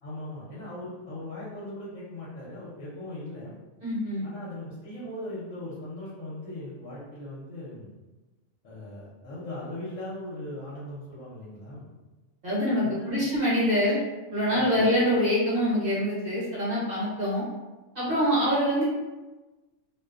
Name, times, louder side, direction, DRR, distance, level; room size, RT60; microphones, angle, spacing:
voice 1, 0.0-3.5 4.2-7.9 8.6-11.9 12.8-13.3 14.5-14.8, left 1 dB, 70° left, -8 dB, 1.0 m, -39 dB
voice 2, 3.8-4.2 12.4-14.0 14.3-17.4 17.9-18.8, equal, 45° right, -7 dB, 1.0 m, -25 dB
2.6 x 2.0 x 2.3 m, 1.1 s
omnidirectional pair, 1.4 m